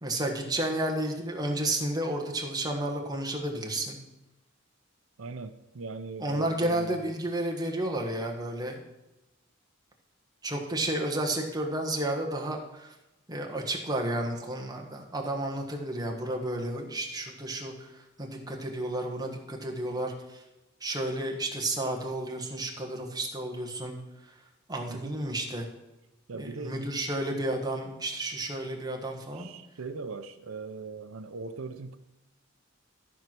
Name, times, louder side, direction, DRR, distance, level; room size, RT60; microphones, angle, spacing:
voice 1, 0.0-4.0 6.2-8.7 10.4-12.9 13.3-20.4 20.8-24.0 24.7-25.7 26.3-29.5, right 1 dB, 20° right, 1.4 m, -32 dB
voice 2, 5.2-7.1 24.9-25.2 26.3-26.8 29.3-32.0, right 4 dB, 80° right, 0.6 m, -40 dB
13.5 x 4.6 x 6.0 m
head